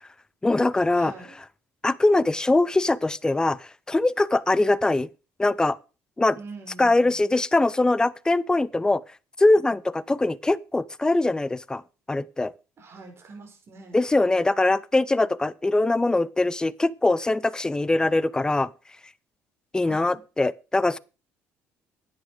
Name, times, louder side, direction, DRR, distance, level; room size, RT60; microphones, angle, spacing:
voice 1, 0.4-1.1 1.8-5.1 5.4-5.8 6.2-6.4 6.8-9.0 9.4-11.8 12.1-12.5 13.9-18.7 19.7-21.0, left 2 dB, 15° left, 0.6 m, -22 dB
voice 2, 0.9-1.4 6.4-7.2 12.8-14.1 18.0-18.1 19.8-20.2, right 3 dB, 45° right, 5.3 m, -44 dB
10.0 x 9.1 x 5.1 m
supercardioid pair, 85°, 6 cm